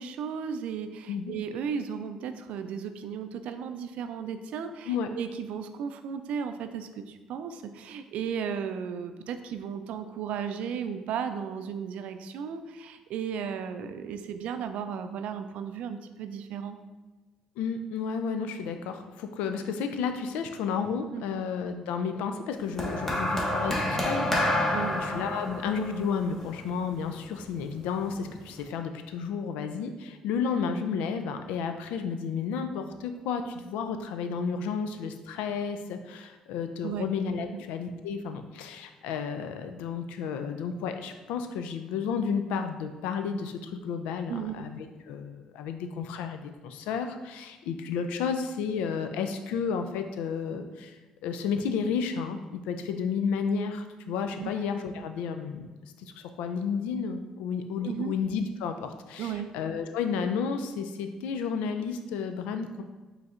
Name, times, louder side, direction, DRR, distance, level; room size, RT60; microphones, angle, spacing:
voice 1, 0.0-16.8 21.1-21.4 24.7-25.0 36.8-37.0 37.5-37.6 44.3-44.7 54.4-54.5 57.8-58.1 59.2-59.5, right 7 dB, 75° right, 8 dB, 0.3 m, -35 dB
voice 2, 17.6-51.0 51.2-55.7 56.0-62.8, left 6 dB, 80° left, 7 dB, 0.3 m, -32 dB
sound 1, 22.8-27.2 28.1-28.4, left 1 dB, 15° left, 0.9 m, -29 dB
4.9 x 3.2 x 2.4 m, 1.2 s
supercardioid pair, 65°, 2 cm